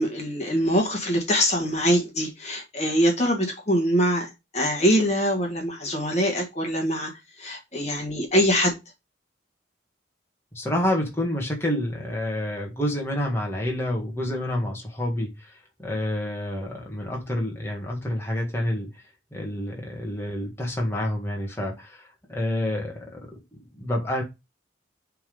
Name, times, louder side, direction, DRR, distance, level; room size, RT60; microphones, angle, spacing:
voice 1, 0.0-7.1 7.4-8.8, equal, 35° left, 1.5 m, -23 dB
voice 2, 10.5-19.0 19.3-24.2, left 1 dB, 15° left, 1.7 m, -28 dB
6.7 x 3.8 x 5.3 m
head